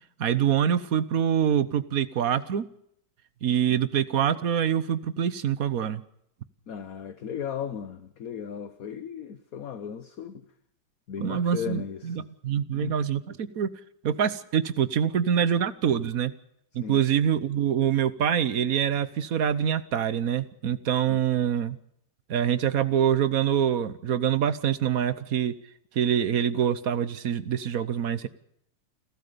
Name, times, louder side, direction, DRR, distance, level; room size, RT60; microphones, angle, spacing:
voice 1, 0.2-2.6 3.4-6.0 11.2-13.7 14.0-16.3 16.7-21.8 22.3-25.5 25.9-28.3, right 9 dB, 55° right, 15 dB, 1.3 m, -25 dB
voice 2, 6.7-10.4 11.1-12.0 12.7-12.9 16.8-17.0 21.1-21.2, left 8 dB, 55° left, 11 dB, 1.3 m, -36 dB
30.0 x 13.0 x 6.8 m, 0.72 s
omnidirectional pair, 2.0 m